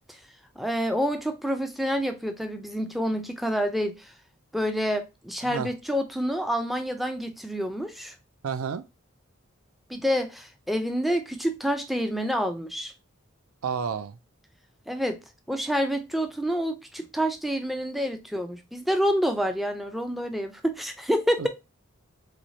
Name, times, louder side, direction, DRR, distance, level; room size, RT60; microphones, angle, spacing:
voice 1, 0.6-4.1 4.5-8.2 9.9-12.9 14.9-15.2 15.5-21.5, equal, ahead, 0.3 m, -28 dB
voice 2, 8.4-8.8 13.6-14.2 21.4-21.5, right 6 dB, 80° right, 0.4 m, -30 dB
3.1 x 3.1 x 2.6 m
head